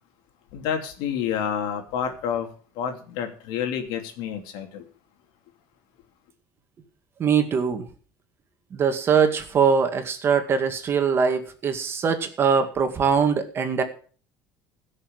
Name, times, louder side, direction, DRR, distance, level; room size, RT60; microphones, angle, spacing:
voice 1, 0.5-2.5 2.8-4.8, left 8 dB, 80° left, 3.0 m, -29 dB
voice 2, 7.2-7.8 8.7-13.8, right 6 dB, 30° right, 2.1 m, -22 dB
16.5 x 6.6 x 7.8 m
cardioid pair, 145°, 7 cm